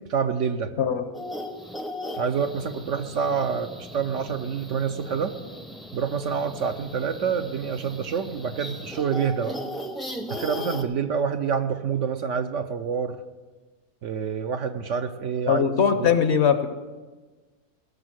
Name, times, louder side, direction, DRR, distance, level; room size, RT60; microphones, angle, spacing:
voice 1, 0.1-0.7 2.2-5.3 5.9-9.6 10.3-13.2 14.0-15.7 16.0-16.1, right 6 dB, 65° right, 8 dB, 0.9 m, -27 dB
sound 1, 1.1-10.8, left 1 dB, ahead, 0.6 m, -37 dB
voice 2, 15.5-16.7, left 7 dB, 55° left, 9 dB, 0.9 m, -20 dB
16.5 x 6.6 x 6.3 m, 1.3 s
omnidirectional pair, 1.5 m